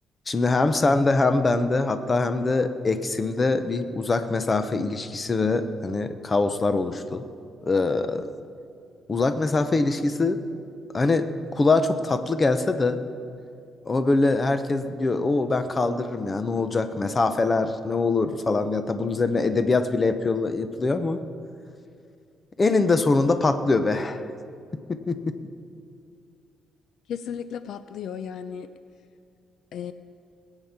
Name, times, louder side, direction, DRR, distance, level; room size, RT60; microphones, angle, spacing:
voice 1, 0.3-7.2 7.6-8.3 9.1-10.4 10.9-11.3 11.5-13.0 13.9-21.2 22.6-24.2 24.9-25.4, left 3 dB, 25° left, 10 dB, 0.7 m, -23 dB
voice 2, 27.1-28.7 29.7-29.9, left 8 dB, 65° left, 12 dB, 0.5 m, -34 dB
18.5 x 9.0 x 5.8 m, 2.4 s
cardioid pair, 140°, 0 cm